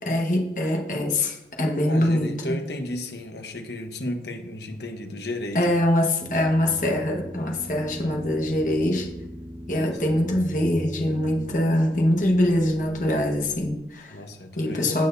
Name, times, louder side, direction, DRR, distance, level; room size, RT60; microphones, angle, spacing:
voice 1, 0.0-2.6 5.5-9.1 9.7-14.2 14.6-15.1, left 1 dB, 45° left, 2 dB, 1.4 m, -23 dB
voice 2, 1.9-5.7 8.1-8.3 9.7-9.9 14.1-15.1, left 1 dB, 75° left, 4 dB, 1.3 m, -33 dB
sound 1, 6.2-13.7, equal, 30° right, 1.2 m, -39 dB
17.0 x 6.4 x 2.7 m, 0.90 s
head